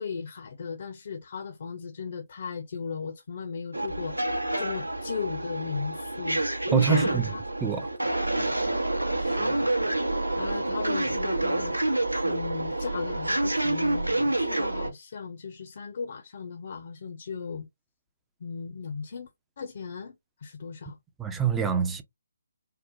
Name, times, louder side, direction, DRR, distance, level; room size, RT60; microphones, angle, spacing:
voice 1, 0.0-6.4 6.9-7.4 8.4-8.5 9.2-9.7 10.4-11.8 12.2-17.7 18.4-19.3 19.6-21.0, left 5 dB, 45° left, 0.5 m, -37 dB
sound 1, 3.7-14.9, right 2 dB, 85° right, 0.8 m, -28 dB
voice 2, 6.7-7.3 7.6-7.9 21.2-22.0, right 7 dB, 10° right, 0.4 m, -25 dB
3.7 x 2.1 x 2.5 m
figure-of-eight pair, 145°, 0 cm